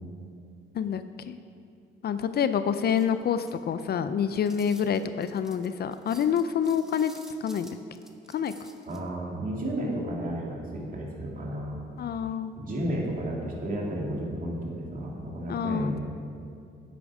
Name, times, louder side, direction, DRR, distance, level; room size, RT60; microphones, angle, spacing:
voice 1, 0.7-1.4 2.0-7.1 7.4-7.7 8.3-8.5 12.0-12.5 15.5-16.0, left 8 dB, 55° left, 11 dB, 0.5 m, -27 dB
sound 1, 2.8-3.9 4.5-9.0, equal, ahead, 1.0 m, -52 dB
voice 2, 8.9-11.8 12.6-16.0, right 1 dB, 45° right, -3 dB, 2.6 m, -32 dB
10.5 x 8.6 x 4.9 m, 2.4 s
cardioid pair, 90°, 20 cm